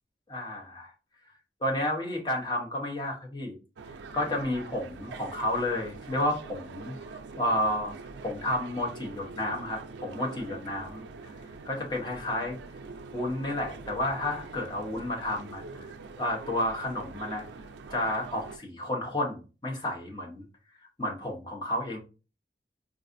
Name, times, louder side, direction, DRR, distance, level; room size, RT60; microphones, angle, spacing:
voice 1, 0.3-0.9 1.6-3.6 4.1-7.9 8.2-11.0 11.6-12.6 13.1-15.6 16.2-17.5 17.9-20.4 21.0-22.0, left 1 dB, 25° left, 0 dB, 0.8 m, -31 dB
sound 1, 3.8-18.6, right 4 dB, 80° right, 0.4 m, -44 dB
3.9 x 2.5 x 2.5 m, 0.33 s
head